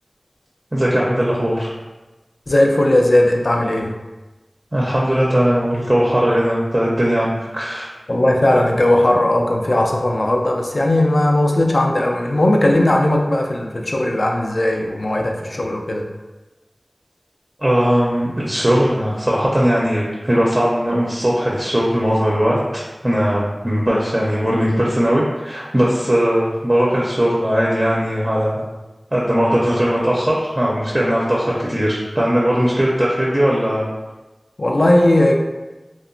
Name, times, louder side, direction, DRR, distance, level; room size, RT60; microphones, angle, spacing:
voice 1, 0.7-1.7 4.7-7.9 17.6-28.6 29.1-33.9, equal, 30° right, -5 dB, 0.4 m, -19 dB
voice 2, 2.5-3.9 8.1-16.0 34.6-35.4, left 1 dB, 65° left, 1 dB, 0.3 m, -17 dB
2.8 x 2.1 x 2.5 m, 1.1 s
wide cardioid pair, 55°, 0 cm